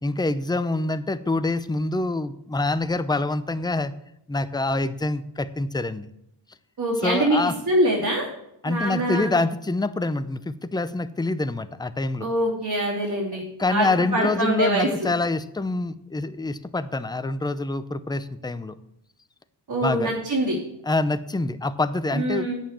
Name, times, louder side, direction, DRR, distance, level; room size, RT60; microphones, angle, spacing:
voice 1, 0.0-3.9 4.3-6.1 7.0-7.5 8.6-12.3 13.6-18.7 19.8-20.1 20.8-22.5, left 2 dB, 10° left, 12 dB, 0.5 m, -26 dB
voice 2, 6.8-7.4 7.7-8.3 8.6-9.3 12.2-15.1 19.7-20.6 22.1-22.6, right 1 dB, 50° right, -5 dB, 2.9 m, -24 dB
8.7 x 7.4 x 7.3 m, 0.80 s
wide cardioid pair, 95°, 46 cm